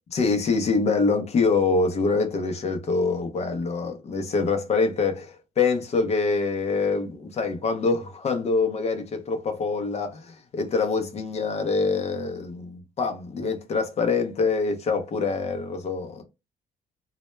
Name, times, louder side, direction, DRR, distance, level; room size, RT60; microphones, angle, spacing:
voice 1, 0.1-12.7 13.0-16.2, left 4 dB, 40° left, 0.6 m, -25 dB
2.1 x 2.0 x 3.0 m
cardioid pair, 110°, 17 cm